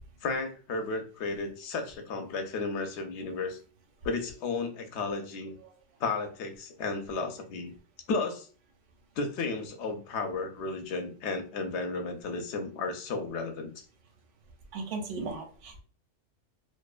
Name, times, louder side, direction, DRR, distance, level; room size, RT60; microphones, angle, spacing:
voice 1, 0.2-3.6 4.0-5.6 6.0-7.7 8.1-8.5 9.2-13.8, left 3 dB, 70° left, 5 dB, 0.8 m, -33 dB
voice 2, 14.7-15.8, right 3 dB, 85° right, 4 dB, 0.9 m, -36 dB
2.6 x 2.2 x 2.3 m, 0.39 s
omnidirectional pair, 1.2 m